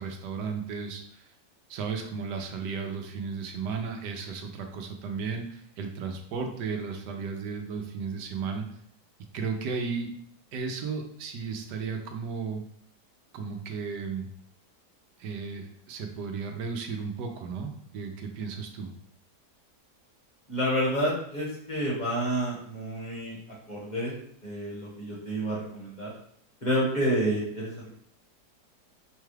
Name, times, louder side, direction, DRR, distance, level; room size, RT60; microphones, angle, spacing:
voice 1, 0.0-1.3 1.7-8.6 9.3-10.1 10.5-12.6 13.3-14.3 15.2-18.9, right 5 dB, 85° right, 4 dB, 1.2 m, -34 dB
voice 2, 20.5-23.4 23.7-24.1 24.4-26.1 26.6-27.9, equal, 30° left, -6 dB, 1.0 m, -29 dB
5.5 x 2.3 x 3.2 m, 0.66 s
omnidirectional pair, 1.8 m